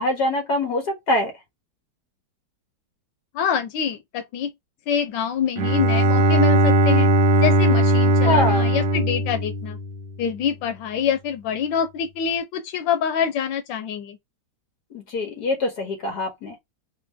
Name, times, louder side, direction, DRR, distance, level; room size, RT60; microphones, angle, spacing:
voice 1, 0.0-1.3 8.3-8.7 14.9-16.6, left 1 dB, 60° left, 2.2 m, -24 dB
voice 2, 3.3-4.5 4.9-7.1 7.4-9.8 10.2-14.2, left 8 dB, 90° left, 1.4 m, -25 dB
Bowed string instrument, 5.6-10.2, right 1 dB, 90° right, 1.4 m, -19 dB
4.3 x 2.2 x 4.4 m
omnidirectional pair, 1.9 m